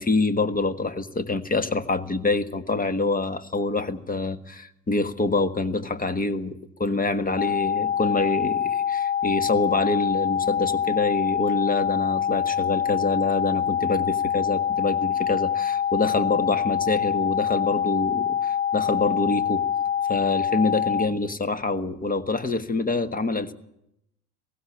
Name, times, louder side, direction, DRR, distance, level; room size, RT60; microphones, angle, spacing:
voice 1, 0.0-19.7 20.1-23.5, left 3 dB, 15° left, 12 dB, 1.6 m, -26 dB
sound 1, 7.4-21.1, left 8 dB, 75° left, 1.2 m, -25 dB
18.0 x 15.5 x 9.9 m, 0.81 s
hypercardioid pair, 75°, 48 cm